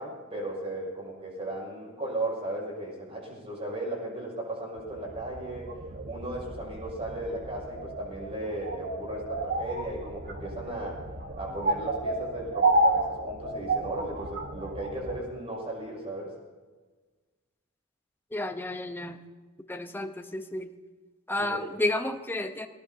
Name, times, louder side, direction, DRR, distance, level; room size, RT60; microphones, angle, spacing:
voice 1, 0.0-5.7 6.0-11.0 11.4-16.3 21.4-21.6, right 1 dB, 25° right, -3 dB, 6.4 m, -36 dB
sound 1, 4.8-15.2, right 2 dB, 45° right, 1.3 m, -31 dB
voice 2, 18.3-19.2 19.7-20.7 21.3-22.7, left 1 dB, 10° left, 6 dB, 0.9 m, -31 dB
23.5 x 18.5 x 2.8 m, 1.4 s
head